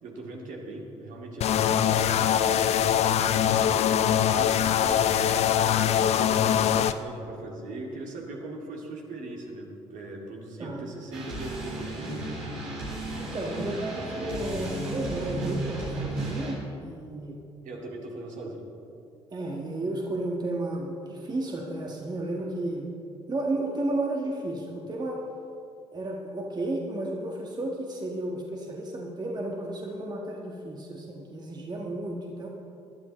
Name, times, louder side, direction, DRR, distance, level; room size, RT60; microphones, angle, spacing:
voice 1, 0.0-2.4 3.0-5.5 6.0-12.3 17.6-18.6, right 2 dB, 55° right, -1 dB, 2.3 m, -40 dB
sound 1, 1.4-6.9, left 9 dB, 45° left, 0.5 m, -23 dB
sound 2, 11.1-16.5, right 1 dB, 75° right, 3.7 m, -34 dB
voice 2, 13.2-17.4 19.3-23.0 23.3-25.2 25.9-32.5, right 2 dB, 25° right, 0 dB, 1.5 m, -33 dB
21.0 x 12.0 x 3.1 m, 2.6 s
figure-of-eight pair, 50°, 16 cm